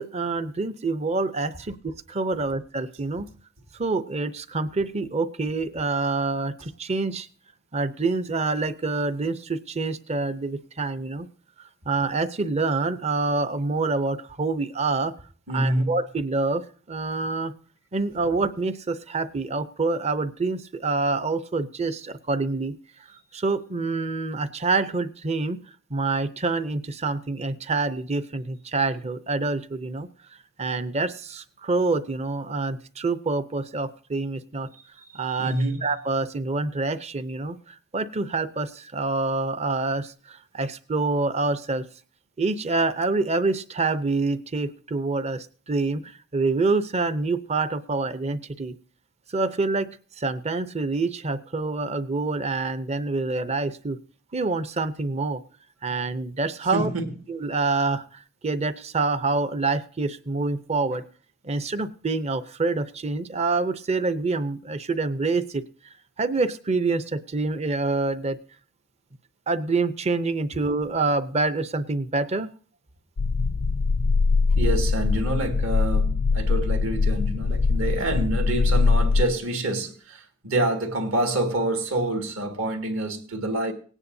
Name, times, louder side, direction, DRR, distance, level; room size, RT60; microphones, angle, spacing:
voice 1, 0.0-3.3 3.8-7.3 7.7-11.3 11.9-15.1 15.5-17.5 17.9-22.7 23.3-25.6 25.9-30.1 30.6-34.7 35.1-35.5 35.8-41.8 42.4-48.8 49.3-49.9 50.2-54.0 54.3-55.4 55.8-56.9 57.3-61.0 61.4-65.6 66.2-68.4 69.5-72.5, right 3 dB, 30° right, 0.6 m, -26 dB
voice 2, 15.5-16.0 35.1-35.9 56.7-57.2 74.6-83.7, right 1 dB, 65° right, 2.1 m, -27 dB
sound 1, 73.2-79.2, left 4 dB, 70° left, 0.5 m, -22 dB
18.5 x 9.8 x 2.7 m
head